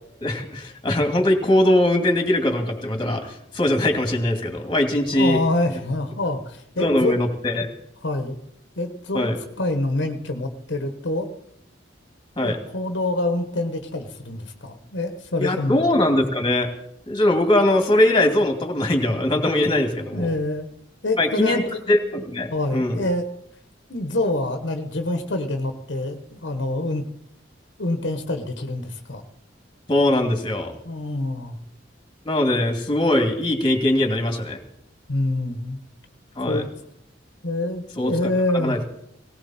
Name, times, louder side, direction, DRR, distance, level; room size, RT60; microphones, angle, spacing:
voice 1, 0.2-5.4 6.8-7.7 9.1-9.4 12.4-12.6 15.4-16.7 17.1-20.3 21.2-21.6 21.9-23.0 29.9-30.7 32.3-34.6 36.4-36.7 38.0-38.1 38.5-38.8, left 1 dB, 25° left, 4 dB, 2.3 m, -21 dB
voice 2, 5.1-7.2 8.0-8.4 8.8-9.3 9.6-11.3 12.4-15.8 20.1-20.7 21.0-22.0 22.5-23.3 23.9-27.0 27.8-29.2 30.8-31.6 35.1-35.8 36.4-36.7 37.4-38.8, left 2 dB, 80° left, 7 dB, 1.4 m, -26 dB
18.0 x 18.0 x 4.3 m, 0.75 s
head